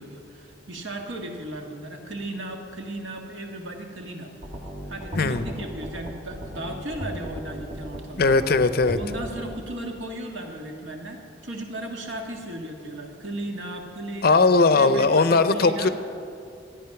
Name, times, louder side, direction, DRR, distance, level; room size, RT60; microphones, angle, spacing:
voice 1, 0.0-4.3 4.9-8.3 8.9-14.5 14.7-15.9, right 1 dB, 75° right, 2 dB, 1.6 m, -36 dB
sound 1, 4.4-9.5, equal, 45° right, 1.3 m, -36 dB
voice 2, 5.1-5.5 8.2-9.0 14.2-15.9, left 3 dB, 50° left, 12 dB, 0.5 m, -19 dB
13.5 x 9.3 x 5.9 m, 2.5 s
head